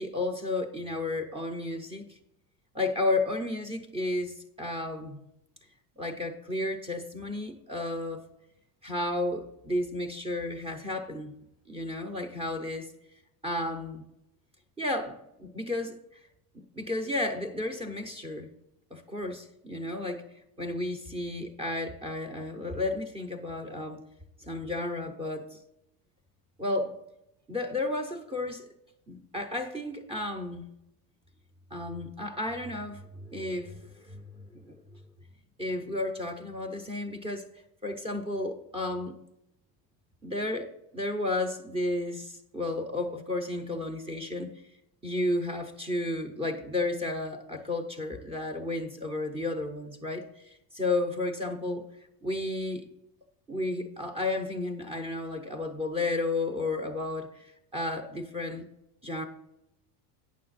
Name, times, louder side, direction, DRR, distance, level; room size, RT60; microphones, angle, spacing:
voice 1, 0.0-2.2 2.7-5.2 6.0-8.2 8.8-11.3 11.7-12.9 13.4-14.0 14.8-16.0 16.8-18.5 18.9-20.2 20.6-24.0 24.4-25.6 26.6-27.0 27.5-28.7 29.1-30.7 31.7-34.8 35.6-37.5 37.8-39.2 40.2-40.7 40.9-44.5 45.0-51.8 52.2-52.9 53.5-58.6 59.0-59.2, left 2 dB, 15° right, 4 dB, 0.7 m, -32 dB
9.4 x 6.7 x 4.0 m, 0.83 s
cardioid pair, 155°, 44 cm